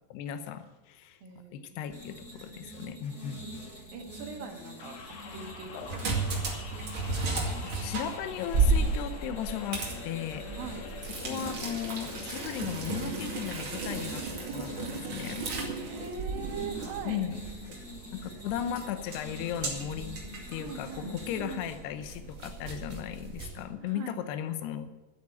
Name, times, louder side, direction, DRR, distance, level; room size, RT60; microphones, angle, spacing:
voice 1, 0.1-1.2 1.5-3.5 5.7-5.9 7.6-10.5 11.2-14.2 14.5-15.8 17.1-17.4 17.7-17.8 18.1-20.1 20.5-24.9, left 9 dB, 80° left, 9 dB, 3.0 m, -36 dB
voice 2, 1.2-1.9 2.8-3.7 3.9-5.0 5.3-6.5 10.5-10.8 15.7-17.2 20.5-21.7 22.2-22.3 23.8-24.1, right 6 dB, 65° right, 2 dB, 3.4 m, -42 dB
sound 1, 1.9-21.7, equal, 25° left, 3.8 m, -46 dB
sound 2, 4.8-13.4, left 5 dB, 60° left, 2.1 m, -46 dB
sound 3, 5.8-23.6, right 3 dB, 40° right, 2.5 m, -34 dB
11.0 x 8.6 x 8.7 m, 1.2 s
omnidirectional pair, 4.7 m